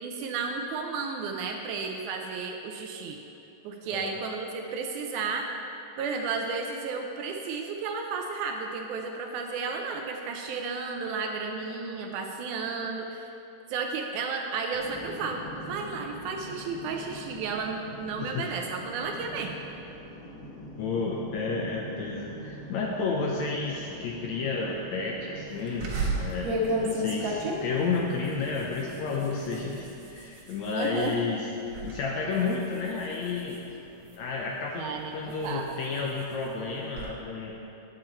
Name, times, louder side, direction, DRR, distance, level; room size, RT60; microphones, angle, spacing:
voice 1, 0.0-3.2 3.6-5.5 6.0-13.3 13.7-19.5 30.7-31.3 34.8-35.8, right 4 dB, 75° right, 3 dB, 1.9 m, -33 dB
voice 2, 3.8-4.2 18.2-18.5 20.8-31.5 31.8-33.7 34.2-34.9 35.1-37.6, left 4 dB, 75° left, -1 dB, 1.7 m, -31 dB
sound 1, 14.7-29.7, equal, 55° left, 2.1 m, -43 dB
sound 2, 25.8-31.2 31.6-32.0 32.3-34.4 34.9-37.1, equal, 60° right, 2.3 m, -33 dB
8.9 x 8.8 x 4.4 m, 3.0 s
omnidirectional pair, 3.9 m